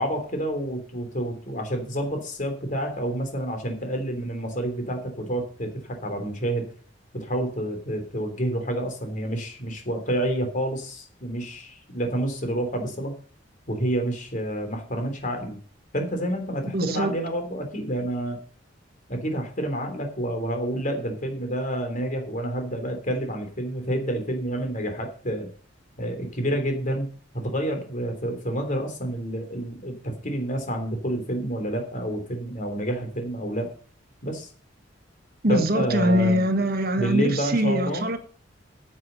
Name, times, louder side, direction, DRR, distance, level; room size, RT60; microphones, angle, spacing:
voice 1, 0.0-5.7 6.0-6.6 7.1-13.1 13.7-15.6 15.9-18.4 19.1-25.5 26.0-27.1 27.3-33.7 34.2-34.5 35.5-36.4 37.0-38.1, right 1 dB, 45° left, 3.4 m, -28 dB
voice 2, 16.7-17.1 35.4-38.2, equal, 55° right, 1.5 m, -23 dB
9.6 x 7.6 x 7.1 m
head